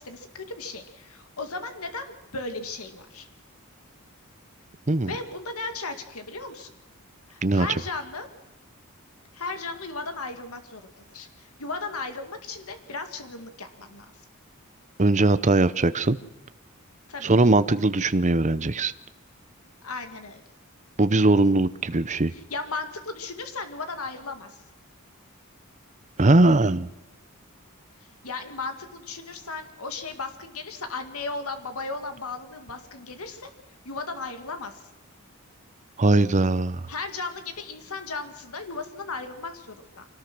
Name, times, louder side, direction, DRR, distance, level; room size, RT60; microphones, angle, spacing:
voice 1, 0.0-3.3 5.0-6.7 7.3-8.3 9.3-10.8 11.1-14.1 17.1-17.3 19.8-20.4 22.3-24.6 28.2-33.5 33.8-34.9 36.9-40.1, left 3 dB, 85° left, 7 dB, 2.2 m, -36 dB
voice 2, 15.0-16.2 17.2-18.9 21.0-22.3 26.2-26.9 36.0-36.8, right 2 dB, 35° right, 13 dB, 0.8 m, -20 dB
25.0 x 18.5 x 6.1 m, 0.99 s
head